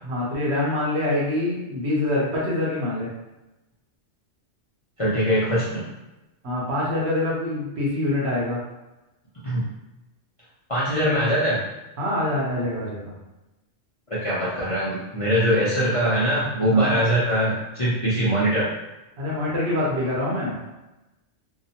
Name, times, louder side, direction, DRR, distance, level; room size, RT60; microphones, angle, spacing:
voice 1, 0.0-3.1 6.4-8.6 12.0-13.1 16.7-16.9 19.2-20.6, left 1 dB, 65° right, -5 dB, 0.9 m, -25 dB
voice 2, 5.0-5.8 9.4-9.6 10.7-11.6 14.1-18.7, equal, 45° left, -10 dB, 0.4 m, -22 dB
2.8 x 2.0 x 2.7 m, 1.0 s
omnidirectional pair, 1.3 m